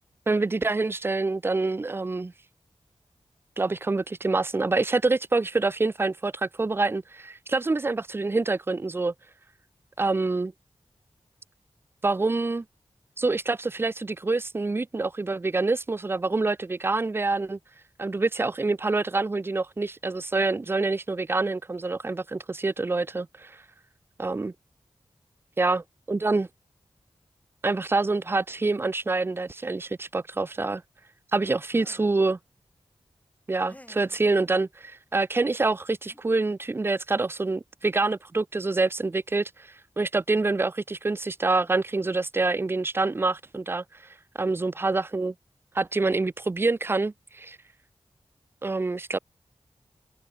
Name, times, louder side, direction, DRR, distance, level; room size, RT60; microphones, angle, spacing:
voice 1, 0.3-2.3 3.6-9.1 10.0-10.5 12.0-12.6 13.2-17.6 18.0-23.5 24.2-24.5 25.6-25.8 26.1-26.5 27.6-30.8 31.3-32.4 33.5-39.5 40.0-43.8 44.4-45.3 45.7-47.6 48.6-49.2, right 3 dB, 20° right, 0.3 m, -26 dB
sound 1, 31.7-32.2 33.7-34.2 35.6-35.7 36.1-36.3, left 1 dB, 15° left, 3.1 m, -52 dB
open air
wide cardioid pair, 55°, 11 cm